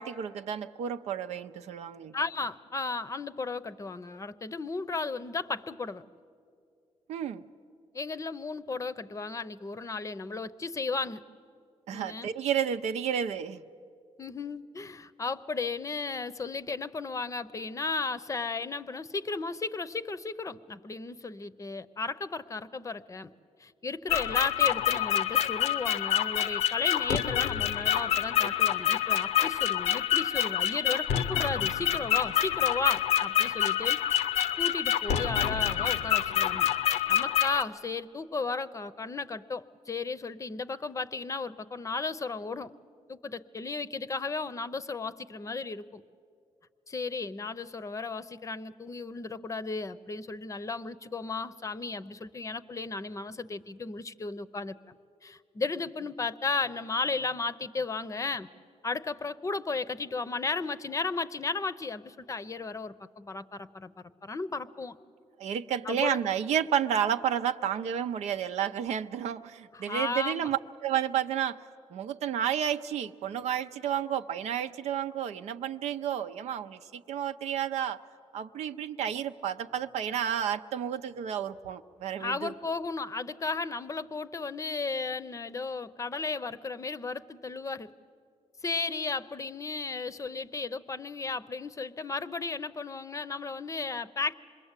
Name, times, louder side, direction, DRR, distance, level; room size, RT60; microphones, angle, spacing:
voice 1, 0.0-2.1 7.1-7.4 11.9-13.6 65.4-71.6 71.9-78.0 78.3-82.5, right 9 dB, 80° right, 9 dB, 0.7 m, -31 dB
voice 2, 2.1-6.0 7.9-11.2 11.9-12.3 14.2-23.3 23.6-34.0 34.6-36.7 37.1-42.7 43.1-46.0 46.9-54.9 55.2-58.5 58.8-63.9 64.2-65.0 65.8-66.2 69.7-70.5 82.2-87.9 88.6-94.4, left 4 dB, 30° left, 14 dB, 0.7 m, -34 dB
sound 1, 24.1-37.6, left 11 dB, 85° left, 0.7 m, -27 dB
26.5 x 21.5 x 8.2 m, 2.4 s
cardioid pair, 100°, 11 cm